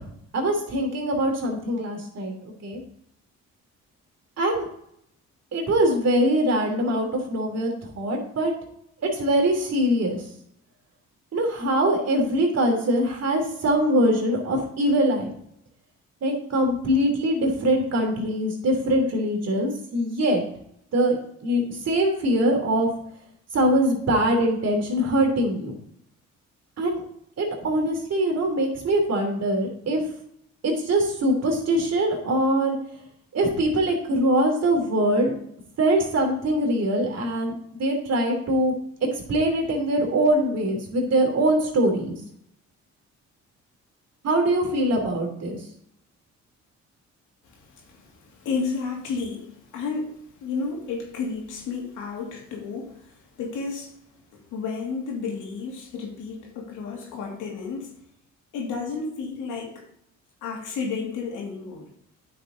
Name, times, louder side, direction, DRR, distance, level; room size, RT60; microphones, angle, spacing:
voice 1, 0.0-2.8 4.4-4.7 5.5-8.5 9.0-10.2 11.3-15.3 16.2-20.4 20.9-22.9 23.5-25.8 26.8-27.0 27.4-30.0 30.6-32.7 33.3-35.3 35.8-38.7 39.3-42.2 44.2-45.6, right 1 dB, 55° right, 2 dB, 3.0 m, -23 dB
voice 2, 47.4-54.0 54.3-57.9 58.5-59.8 60.4-61.9, left 4 dB, 85° left, 0 dB, 2.7 m, -32 dB
9.6 x 6.0 x 3.9 m, 0.71 s
cardioid pair, 90°, 30 cm